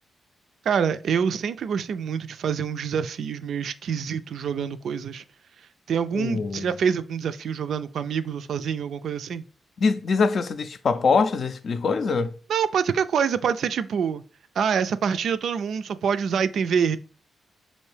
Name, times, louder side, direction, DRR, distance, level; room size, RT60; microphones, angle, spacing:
voice 1, 0.7-5.2 5.9-9.4 12.5-14.2 14.6-17.0, right 7 dB, 70° right, 0.3 m, -26 dB
voice 2, 6.1-6.7 9.8-12.3, left 4 dB, 55° left, 0.4 m, -23 dB
5.4 x 2.6 x 3.3 m
cardioid pair, 110°, 0 cm